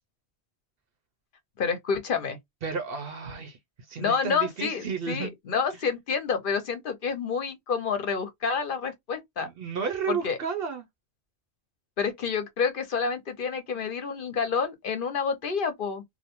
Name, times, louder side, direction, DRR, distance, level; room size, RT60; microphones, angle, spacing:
voice 1, 1.6-2.4 4.0-9.5 10.1-10.4 12.0-16.0, left 5 dB, 60° left, 0.8 m, -28 dB
voice 2, 2.6-5.3 9.4-10.8, right 6 dB, 65° right, 0.8 m, -32 dB
2.6 x 2.1 x 2.8 m
omnidirectional pair, 1.1 m